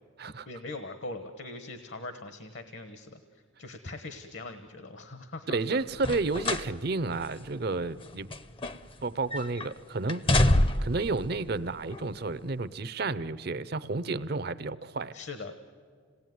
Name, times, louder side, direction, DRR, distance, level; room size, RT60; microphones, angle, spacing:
voice 1, 0.4-5.6 15.1-15.5, left 2 dB, 60° left, 8 dB, 1.1 m, -41 dB
voice 2, 5.5-8.3 9.0-10.5 10.8-15.1, right 3 dB, 50° right, 17 dB, 0.6 m, -31 dB
sound 1, 6.0-6.7 7.1-7.3 8.0-9.0 9.3-9.7 10.1-11.0 11.9-12.0, left 1 dB, 25° left, 0.6 m, -26 dB
27.0 x 18.5 x 9.4 m, 2.1 s
head